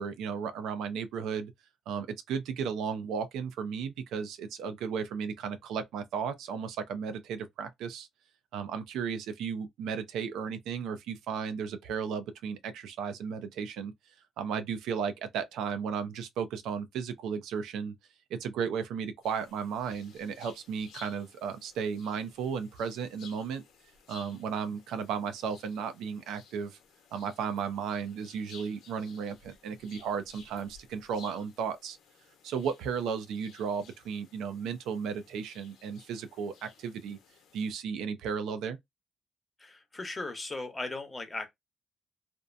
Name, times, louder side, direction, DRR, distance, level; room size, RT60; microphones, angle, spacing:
voice 1, 0.0-1.5 1.9-8.1 8.5-13.9 14.4-17.9 18.3-23.6 24.1-26.8 27.1-32.0 32.4-37.2 37.5-38.8, right 6 dB, 85° right, 0.5 m, -34 dB
sound 1, 19.2-37.7, left 6 dB, 85° left, 0.9 m, -56 dB
voice 2, 39.6-41.5, left 2 dB, 20° left, 0.9 m, -37 dB
2.6 x 2.1 x 2.5 m
cardioid pair, 90°, 0 cm